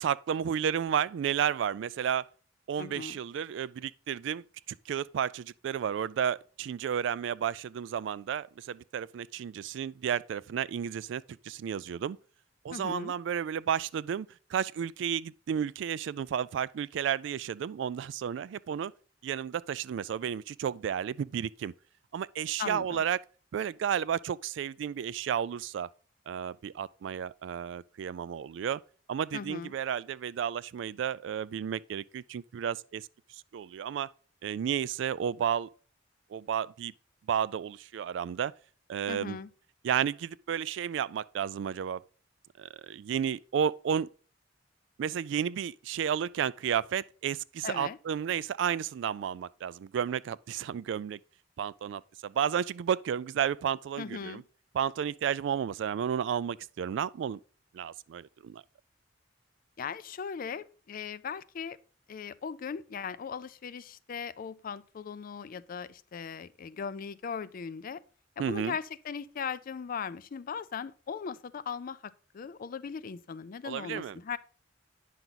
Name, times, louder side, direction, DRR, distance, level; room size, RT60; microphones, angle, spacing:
voice 1, 0.0-2.3 2.7-12.2 12.6-18.9 19.2-21.7 22.1-23.2 23.5-25.9 26.3-28.8 29.1-33.1 33.5-34.1 34.4-35.7 36.3-36.9 37.3-38.5 38.9-39.4 39.8-42.0 42.6-44.1 45.0-51.2 51.6-54.4 54.7-57.4 57.7-58.6 68.4-68.8 73.6-74.2, right 8 dB, 65° right, 0.3 m, -32 dB
voice 2, 2.8-3.2 12.7-13.1 22.6-23.0 29.3-29.7 39.1-39.5 47.6-48.0 54.0-54.4 59.8-61.8 62.1-68.0 68.4-74.4, left 6 dB, 45° left, 0.4 m, -38 dB
9.1 x 5.8 x 4.0 m
head